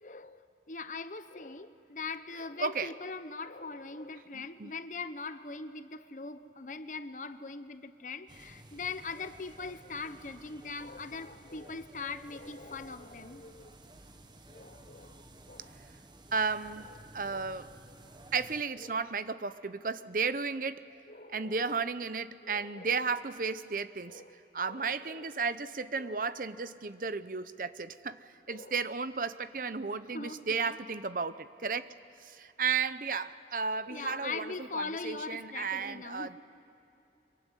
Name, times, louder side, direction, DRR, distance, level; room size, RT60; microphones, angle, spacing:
voice 1, 0.0-0.4 0.7-13.8 14.5-15.7 17.3-17.5 18.8-19.0 21.1-21.9 22.4-23.2 24.0-25.3 26.0-26.3 28.5-28.8 30.1-30.8 33.9-36.4, left 4 dB, 45° left, 11 dB, 1.0 m, -42 dB
voice 2, 2.6-2.9 4.3-4.7 16.3-17.7 18.3-20.9 21.3-24.2 24.5-28.2 28.5-31.9 32.2-36.4, right 5 dB, 50° right, 14 dB, 0.7 m, -34 dB
sound 1, 8.3-18.6, right 1 dB, 25° right, 1.2 m, -54 dB
24.5 x 23.5 x 9.9 m, 3.0 s
head